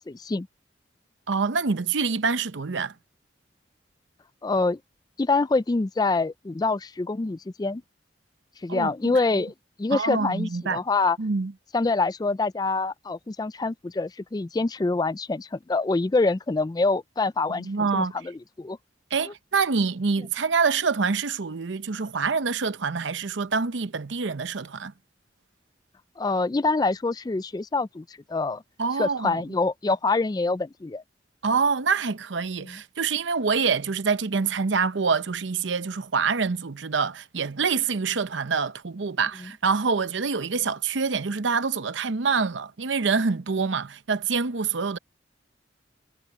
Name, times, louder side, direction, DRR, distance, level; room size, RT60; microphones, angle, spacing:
voice 1, 0.1-0.5 4.4-4.8 5.2-7.8 8.6-9.5 9.8-11.2 11.7-18.8 19.3-19.4 26.2-28.6 29.0-31.0 32.6-32.8 39.4-39.5, left 3 dB, 20° left, 0.3 m, -25 dB
voice 2, 1.3-2.9 8.7-9.2 9.9-10.8 11.2-11.5 17.5-18.1 19.1-24.9 28.8-29.4 31.4-45.0, right 5 dB, 80° right, 0.7 m, -26 dB
head